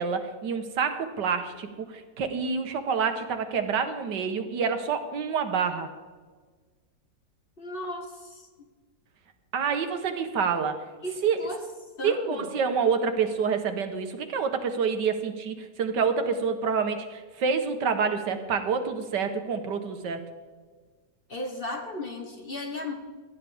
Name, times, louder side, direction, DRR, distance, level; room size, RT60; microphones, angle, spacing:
voice 1, 0.0-5.9 9.5-10.8 11.2-11.4 12.0-20.2, right 6 dB, 80° right, 7 dB, 1.8 m, -27 dB
voice 2, 7.6-8.5 11.0-11.6 12.0-12.5 21.3-22.9, left 2 dB, 35° left, 3 dB, 1.4 m, -35 dB
18.0 x 13.5 x 3.5 m, 1.4 s
omnidirectional pair, 1.8 m